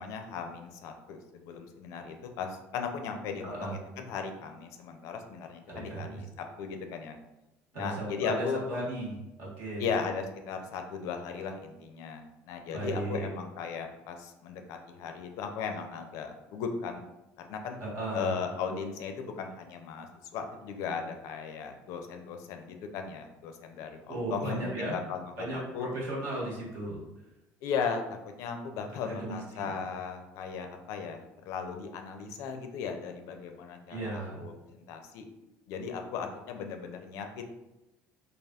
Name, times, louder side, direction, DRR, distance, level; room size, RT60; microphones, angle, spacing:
voice 1, 0.0-7.2 7.8-8.6 9.8-17.0 17.5-17.8 18.1-20.1 20.3-25.9 27.6-35.3 35.7-37.4, left 6 dB, 70° left, 5 dB, 0.4 m, -37 dB
voice 2, 3.4-3.7 5.7-6.2 7.7-9.9 12.7-13.3 17.8-18.4 24.1-25.0 25.4-27.0 29.1-29.7 33.9-34.4, right 2 dB, 70° right, -4 dB, 1.2 m, -36 dB
3.4 x 2.3 x 2.3 m, 0.97 s
cardioid pair, 135°, 6 cm